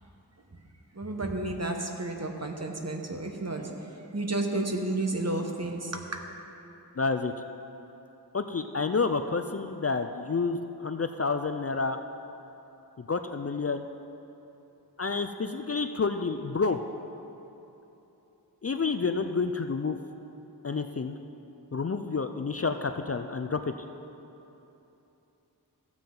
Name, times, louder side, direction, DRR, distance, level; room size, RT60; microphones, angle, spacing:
voice 1, 0.9-6.2, right 2 dB, 40° right, 2 dB, 1.0 m, -32 dB
voice 2, 7.0-7.3 8.3-12.0 13.0-13.9 15.0-16.8 18.6-20.0 20.6-21.2 21.7-23.7, left 4 dB, 40° left, 7 dB, 0.4 m, -29 dB
15.5 x 7.3 x 3.8 m, 3.0 s
wide cardioid pair, 40°, 40 cm